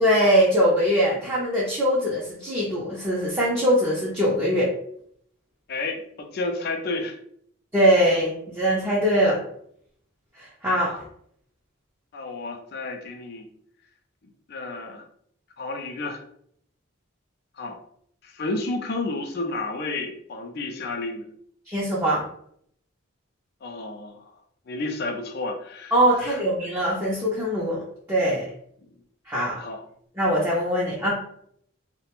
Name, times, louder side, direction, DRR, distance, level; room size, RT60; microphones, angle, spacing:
voice 1, 0.0-4.7 7.7-9.4 10.4-10.9 21.7-22.2 25.9-27.8 28.1-28.5 29.3-29.6 30.2-31.1, equal, 10° right, -7 dB, 0.5 m, -22 dB
voice 2, 5.7-7.2 10.7-10.9 12.1-13.5 14.5-15.0 15.6-16.2 17.6-17.8 18.2-21.3 23.6-24.3 24.7-26.4 28.8-28.9 29.6-29.8, left 2 dB, 50° left, 4 dB, 0.4 m, -31 dB
2.4 x 2.1 x 2.9 m, 0.68 s
head